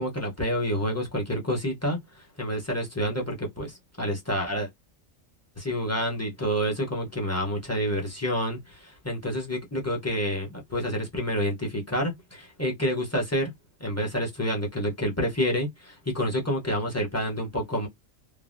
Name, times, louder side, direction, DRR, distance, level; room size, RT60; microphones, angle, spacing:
voice 1, 0.0-4.7 5.6-13.5 13.8-17.9, equal, 15° left, 0.5 m, -28 dB
3.2 x 2.1 x 2.5 m
omnidirectional pair, 1.3 m